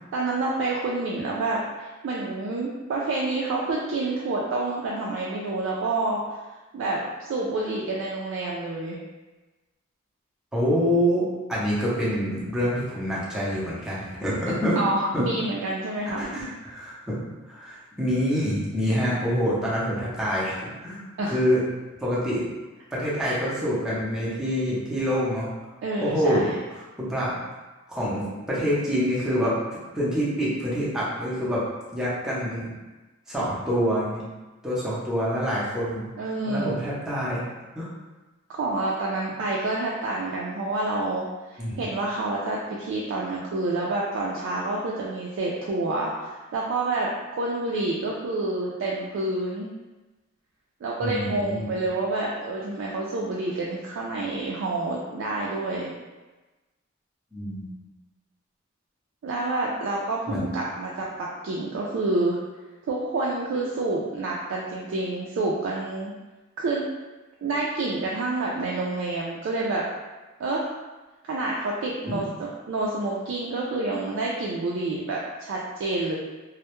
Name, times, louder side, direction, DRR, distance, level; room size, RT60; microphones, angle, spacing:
voice 1, 0.1-6.4 6.7-9.0 14.8-16.2 21.2-21.4 25.8-26.5 36.2-36.7 38.5-49.7 50.8-55.9 59.2-62.4 62.9-66.1 66.6-66.8 67.4-69.8 70.4-70.7 71.2-76.2, right 2 dB, 65° right, -4 dB, 0.3 m, -28 dB
voice 2, 10.5-14.8 15.1-15.3 16.2-17.2 17.4-21.6 22.0-22.4 22.9-25.5 26.0-27.4 27.9-29.6 29.9-32.7 33.3-34.2 34.6-36.1 36.5-37.4 37.7-37.9 41.6-41.8 51.0-51.8 57.3-57.7 60.3-60.5 72.1-72.3, equal, 5° right, -9 dB, 0.5 m, -26 dB
2.1 x 2.0 x 2.9 m, 1.2 s
head